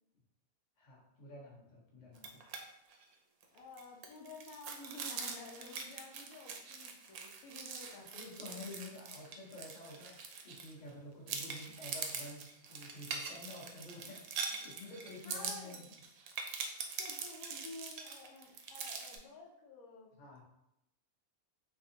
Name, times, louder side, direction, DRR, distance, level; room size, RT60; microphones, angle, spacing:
voice 1, 0.8-2.4 8.0-12.4 12.7-16.0 20.2-20.4, left 2 dB, 35° left, -4 dB, 0.9 m, -50 dB
sound 1, 2.2-2.6 2.9-3.0 3.4-10.9 11.3-19.2, right 5 dB, 85° right, 1.1 m, -43 dB
voice 2, 3.5-8.6 14.0-14.2 15.2-15.9 17.0-20.1, left 2 dB, 80° left, -1 dB, 1.1 m, -52 dB
3.5 x 3.3 x 2.7 m, 0.85 s
omnidirectional pair, 1.5 m